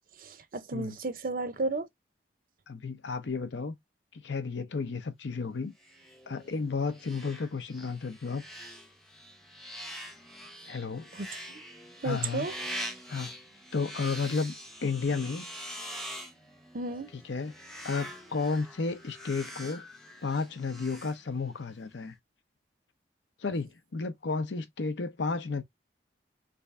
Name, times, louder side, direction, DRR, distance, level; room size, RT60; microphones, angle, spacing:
voice 1, 0.2-1.9 11.2-11.3 12.0-12.5 16.7-17.1, right 3 dB, 50° right, 0.5 m, -33 dB
voice 2, 2.7-3.8 4.1-5.7 6.3-8.4 10.7-11.1 12.0-12.5 13.1-13.3 13.7-14.5 14.8-15.5 17.1-17.5 17.8-19.9 20.2-22.1 23.4-25.6, left 4 dB, 80° left, 0.7 m, -32 dB
sound 1, 5.8-21.7, equal, ahead, 0.6 m, -44 dB
3.4 x 2.6 x 3.2 m
head